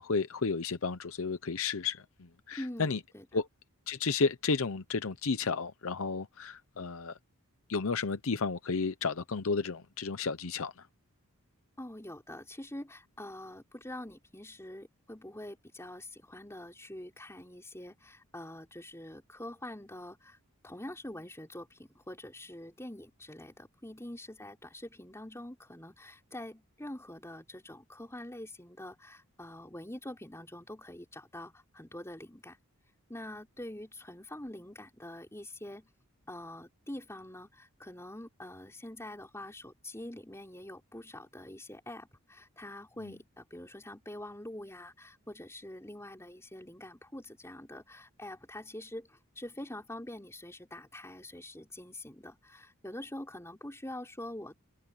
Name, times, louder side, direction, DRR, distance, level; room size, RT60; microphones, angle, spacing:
voice 1, 0.0-3.0 3.3-3.5 3.9-7.2 7.7-10.9, left 4 dB, 65° left, 0.7 m, -32 dB
voice 2, 2.6-3.3 11.8-20.4 20.6-32.6 33.1-35.9 36.3-54.5, left 1 dB, 10° left, 4.6 m, -45 dB
head